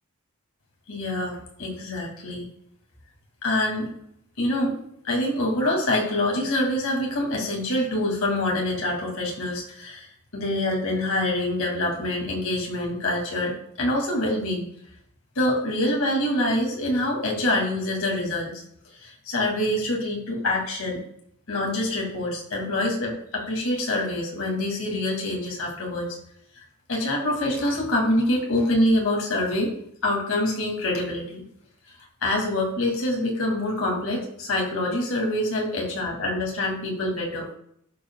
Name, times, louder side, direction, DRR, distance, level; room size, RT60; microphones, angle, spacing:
voice 1, 0.9-2.5 3.4-3.9 4.4-4.8 5.0-10.1 10.3-14.6 15.4-18.5 19.0-21.0 21.5-26.2 26.6-26.7 26.9-29.7 30.0-31.4 32.2-37.5, left 1 dB, 85° left, -1 dB, 2.5 m, -25 dB
13.0 x 4.8 x 2.3 m, 0.68 s
head